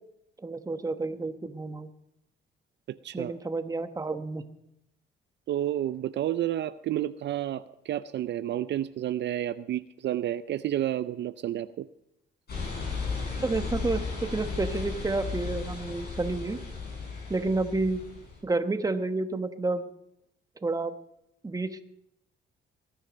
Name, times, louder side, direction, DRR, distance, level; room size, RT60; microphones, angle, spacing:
voice 1, 0.4-1.9 3.1-4.4 13.4-16.6 17.3-18.0 18.4-19.9 20.6-20.9 21.4-21.8, right 3 dB, 20° right, 9 dB, 1.1 m, -30 dB
voice 2, 2.9-3.3 5.5-11.9, right 12 dB, 65° right, 13 dB, 0.5 m, -30 dB
sound 1, 12.5-18.4, left 4 dB, 55° left, 7.5 m, -35 dB
20.0 x 10.0 x 5.2 m, 0.81 s
cardioid pair, 90°, 20 cm